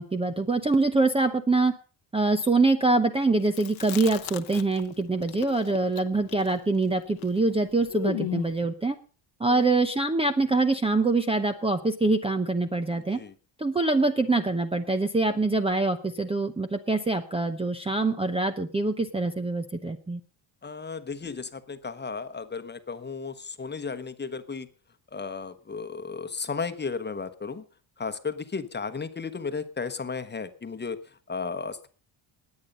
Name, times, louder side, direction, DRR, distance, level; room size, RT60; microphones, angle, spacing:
voice 1, 0.0-1.7 2.1-8.9 9.4-13.2 13.6-20.2, right 3 dB, 10° right, 8 dB, 0.8 m, -24 dB
Chewing mastication, 3.5-4.9 5.2-8.6, left 14 dB, 75° left, 1.0 m, -36 dB
voice 2, 20.6-24.7 25.1-27.6 28.0-31.9, left 5 dB, 20° left, 10 dB, 1.2 m, -34 dB
19.5 x 8.6 x 5.3 m, 0.38 s
cardioid pair, 140°, 48 cm